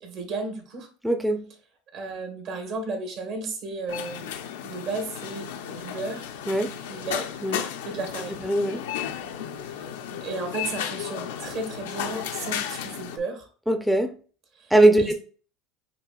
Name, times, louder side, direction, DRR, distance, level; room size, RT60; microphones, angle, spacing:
voice 1, 0.0-0.9 1.9-4.4 4.6-6.3 6.9-7.3 7.8-8.4 9.7-9.9 10.2-13.5 14.6-14.7 15.0-15.1, right 3 dB, 60° right, 3 dB, 1.4 m, -34 dB
voice 2, 1.0-1.4 6.5-6.7 7.4-7.6 8.4-8.8 13.7-14.1 14.7-15.1, right 1 dB, ahead, 6 dB, 0.5 m, -20 dB
sound 1, 3.9-13.2, left 9 dB, 85° left, 0.5 m, -34 dB
5.8 x 2.8 x 2.3 m, 0.41 s
supercardioid pair, 100°, 0 cm